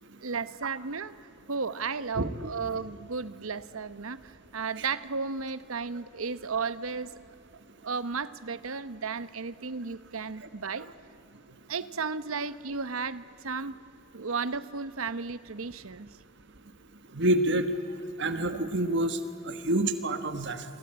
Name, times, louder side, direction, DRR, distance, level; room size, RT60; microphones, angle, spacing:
voice 1, 0.2-1.1 1.5-7.1 7.8-10.9 11.7-13.8 14.1-16.1, right 5 dB, 85° right, 14 dB, 1.0 m, -34 dB
voice 2, 2.2-2.5 17.1-17.7 18.2-19.2 19.4-20.6, right 1 dB, 60° right, 9 dB, 1.4 m, -27 dB
28.5 x 23.0 x 8.8 m, 2.9 s
head